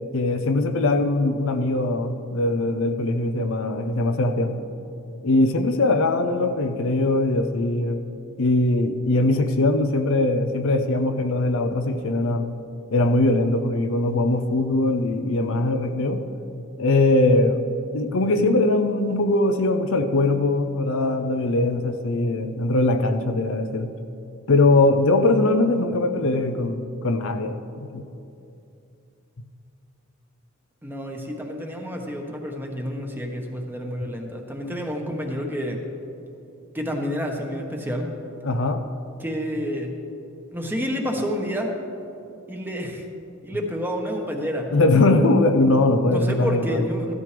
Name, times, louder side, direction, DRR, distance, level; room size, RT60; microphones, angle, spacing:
voice 1, 0.1-4.6 5.2-8.0 8.4-12.6 12.9-16.2 16.8-17.6 17.9-23.9 24.5-27.6 27.9-28.1 38.4-38.8 44.7-46.9, left 2 dB, 65° left, 7 dB, 0.6 m, -21 dB
voice 2, 30.8-35.8 36.7-38.1 39.2-40.0 40.5-41.7 42.5-43.0 43.4-44.7 46.1-47.1, equal, 10° right, 2 dB, 1.1 m, -29 dB
15.0 x 12.5 x 3.4 m, 2.7 s
head